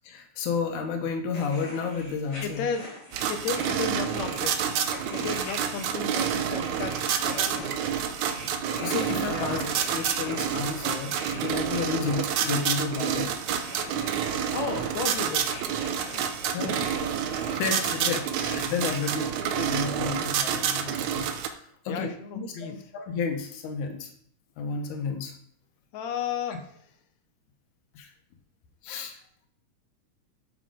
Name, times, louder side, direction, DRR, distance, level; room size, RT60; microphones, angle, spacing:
voice 1, 0.0-2.6 8.8-9.6 9.9-13.3 16.5-16.8 17.5-19.2 19.6-24.1 24.6-25.3 28.0-28.1 28.8-29.2, left 5 dB, 90° left, 3 dB, 2.6 m, -31 dB
sound 1, 1.3-19.6, left 1 dB, 35° left, 3.1 m, -44 dB
voice 2, 2.4-2.9 3.3-4.6 5.1-7.8 9.3-9.8 11.9-12.1 14.5-15.5 16.1-16.2 16.6-16.7 17.9-18.0 19.0-19.1 21.9-22.8 25.9-26.7, left 6 dB, 75° left, 6 dB, 2.1 m, -34 dB
sound 2, 3.1-21.5, right 8 dB, 85° right, 2.1 m, -28 dB
12.0 x 6.3 x 3.7 m, 0.64 s
omnidirectional pair, 3.4 m